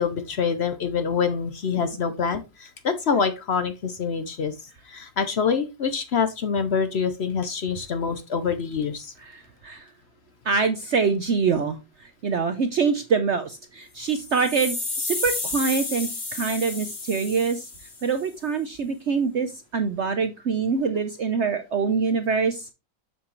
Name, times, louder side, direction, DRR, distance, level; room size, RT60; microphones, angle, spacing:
voice 1, 0.0-4.5 4.9-9.1, left 6 dB, 55° left, 9 dB, 0.7 m, -26 dB
voice 2, 9.2-9.9 10.4-11.8 12.2-17.7 18.0-22.7, right 5 dB, 60° right, 8 dB, 0.7 m, -25 dB
sound 1, 14.0-18.2, left 3 dB, 30° left, 1.0 m, -32 dB
7.2 x 6.3 x 3.2 m, 0.26 s
omnidirectional pair, 1.9 m